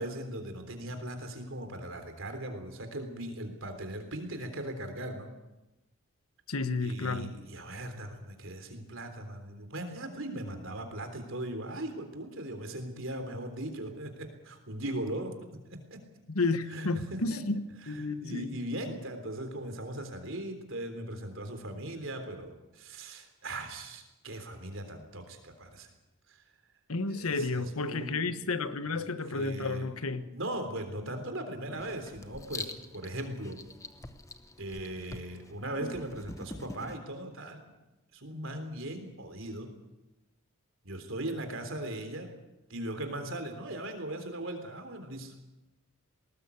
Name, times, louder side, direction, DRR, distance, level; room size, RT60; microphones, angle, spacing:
voice 1, 0.0-5.3 6.8-16.0 16.7-17.4 17.8-25.9 26.3-26.4 27.1-28.3 28.8-29.9 30.3-33.6 34.6-37.7 38.1-39.7 40.8-42.3 42.7-45.3, right 1 dB, 60° right, 3.6 m, -39 dB
voice 2, 6.5-7.3 16.3-17.6 17.9-18.6 26.9-30.2, left 3 dB, 75° left, 1.3 m, -31 dB
Writing, 31.8-37.0, left 2 dB, 15° left, 1.0 m, -44 dB
19.5 x 19.5 x 8.4 m
head